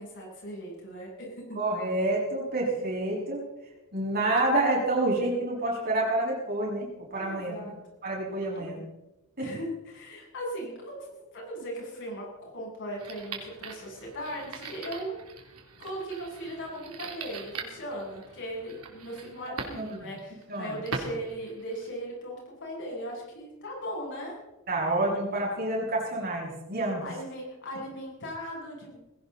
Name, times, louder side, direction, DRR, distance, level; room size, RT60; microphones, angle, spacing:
voice 1, 0.0-1.6 7.2-7.7 8.5-8.6 9.4-15.2 15.8-24.3 27.0-29.0, equal, 55° left, -2 dB, 7.9 m, -38 dB
voice 2, 1.5-3.4 3.9-7.7 8.0-8.9 9.4-9.5 19.7-20.1 20.5-20.8 24.7-27.0, right 2 dB, 45° right, -3 dB, 6.6 m, -28 dB
sound 1, 13.0-22.0, right 4 dB, 75° right, 3.0 m, -42 dB
20.0 x 17.0 x 4.1 m, 1.0 s
head